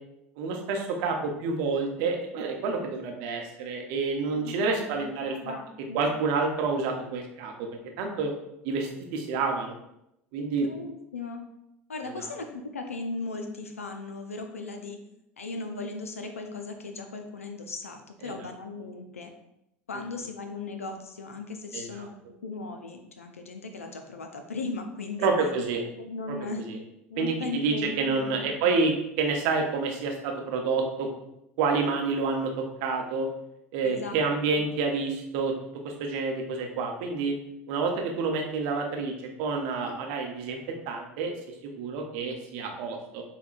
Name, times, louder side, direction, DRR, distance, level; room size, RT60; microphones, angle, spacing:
voice 1, 0.4-5.4 5.9-7.7 8.0-8.3 8.6-9.8 10.3-10.7 12.2-12.3 18.2-18.4 21.7-22.1 25.2-25.8 26.3-26.4 26.7-26.8 27.2-31.1 31.6-33.3 33.7-35.5 35.8-37.4 37.7-40.6 40.9-41.3 41.6-43.2, right 4 dB, 65° right, 2 dB, 0.7 m, -28 dB
voice 2, 4.3-6.0 10.7-11.4 11.9-15.0 15.4-19.3 19.9-22.2 22.4-25.3 26.0-26.7 27.1-28.8 33.8-34.7, left 3 dB, 90° left, 5 dB, 0.4 m, -37 dB
5.6 x 2.2 x 2.4 m, 0.83 s
hypercardioid pair, 70°, 7 cm